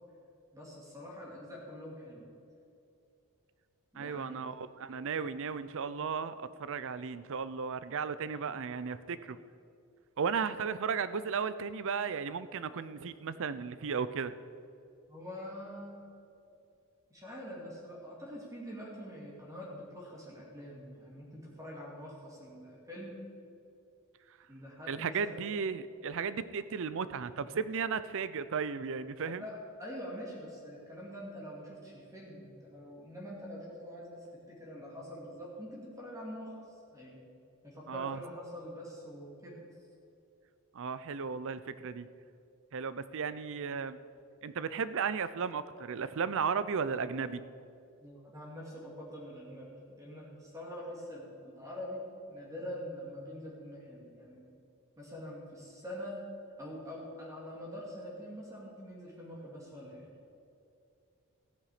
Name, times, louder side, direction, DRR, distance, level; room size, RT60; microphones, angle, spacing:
voice 1, 0.5-2.3 3.9-4.5 15.1-16.0 17.1-23.2 24.5-25.4 29.2-36.6 36.9-37.2 37.6-39.6 48.0-54.5 55.0-56.2 56.6-60.1, equal, 15° right, -4 dB, 2.5 m, -45 dB
voice 2, 4.0-9.4 10.2-14.3 24.9-29.4 37.9-38.2 40.7-42.1 42.7-44.0 44.4-47.4, right 6 dB, 60° right, 15 dB, 0.5 m, -35 dB
14.5 x 9.9 x 4.9 m, 2.5 s
head